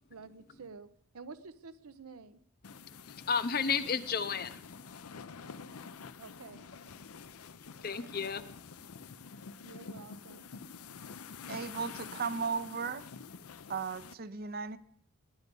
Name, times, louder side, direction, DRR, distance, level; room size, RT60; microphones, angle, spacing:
voice 1, 0.1-0.9 1.1-2.4 6.2-6.6 9.6-10.5, right 4 dB, 85° right, 0.8 m, -49 dB
sound 1, 2.6-14.1, left 5 dB, 85° left, 0.6 m, -48 dB
voice 2, 2.7-6.2 6.7-9.0, left 5 dB, 40° left, 0.7 m, -36 dB
voice 3, 11.5-13.0 13.7-14.8, right 5 dB, 45° right, 0.6 m, -36 dB
20.0 x 9.4 x 5.3 m
head